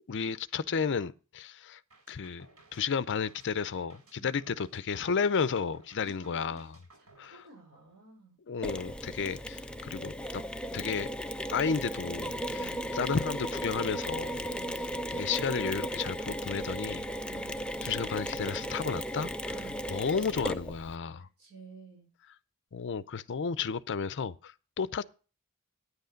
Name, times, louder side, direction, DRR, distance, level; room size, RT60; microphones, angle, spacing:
voice 1, 0.1-1.8 2.1-2.5 2.7-6.8 7.2-7.4 8.5-10.4 10.7-11.1 11.5-14.5 15.1-17.0 17.8-19.5 19.9-21.3 22.7-25.0, left 5 dB, 55° left, 0.5 m, -32 dB
sound 1, 1.9-8.1, right 3 dB, 85° right, 4.7 m, -59 dB
voice 2, 6.0-6.7 7.2-8.4 12.5-12.9 14.5-14.9 17.2-17.6 19.5-19.8 21.2-22.1, right 5 dB, 50° right, 5.5 m, -53 dB
Mechanisms, 8.6-21.0, equal, 5° left, 0.5 m, -36 dB
10.0 x 8.1 x 5.1 m
head